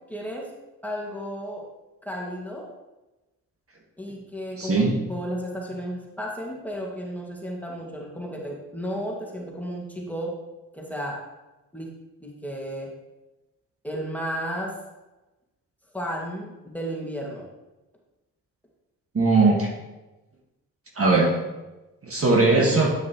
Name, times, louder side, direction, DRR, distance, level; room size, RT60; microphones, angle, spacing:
voice 1, 0.1-0.5 0.8-1.6 2.0-2.7 4.0-10.3 10.7-11.2 11.7-11.9 12.2-12.9 13.8-14.8 15.9-17.5, equal, 5° left, -2 dB, 2.1 m, -33 dB
voice 2, 4.6-5.0 19.1-19.7 21.0-21.3 22.0-22.9, right 3 dB, 35° right, -1 dB, 1.8 m, -19 dB
9.5 x 5.9 x 3.1 m, 1.1 s
supercardioid pair, 55°, 38 cm